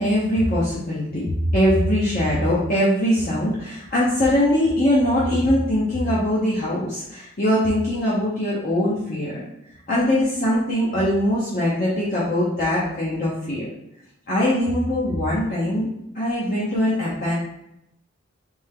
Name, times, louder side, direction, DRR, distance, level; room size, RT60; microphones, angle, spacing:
voice 1, 0.0-9.4 9.9-13.7 14.3-15.9 16.1-17.3, left 1 dB, 40° left, -8 dB, 0.8 m, -21 dB
3.5 x 3.2 x 3.5 m, 0.82 s
head